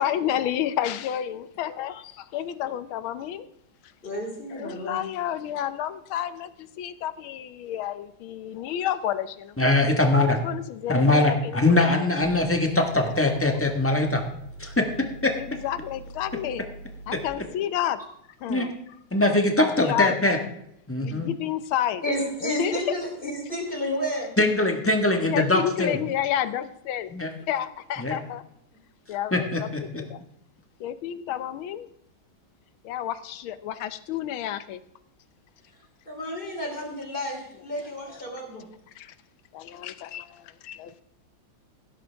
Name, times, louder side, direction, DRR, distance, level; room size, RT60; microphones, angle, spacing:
voice 1, 0.0-3.5 4.5-9.6 10.4-11.9 13.5-13.6 15.4-16.6 17.1-18.0 18.4-18.7 19.8-20.1 21.0-22.0 22.4-22.8 25.2-27.1 27.5-28.4 29.1-29.7 29.9-30.2 30.8-31.9 32.8-34.8 38.1-38.2 38.9-39.1 39.5-41.0, left 11 dB, 80° left, 13 dB, 1.6 m, -30 dB
voice 2, 4.0-5.0 22.0-24.3 36.1-38.7, equal, 25° left, 0 dB, 3.5 m, -31 dB
voice 3, 9.6-10.4 10.9-14.2 14.6-15.3 18.5-18.7 19.1-20.4 20.9-21.3 24.4-26.0 27.1-27.3 28.0-28.2 29.3-29.8, left 2 dB, 10° left, 3 dB, 1.2 m, -22 dB
sound 1, 12.2-17.3, right 2 dB, 50° left, 3.8 m, -43 dB
16.5 x 12.5 x 3.5 m, 0.76 s
omnidirectional pair, 2.3 m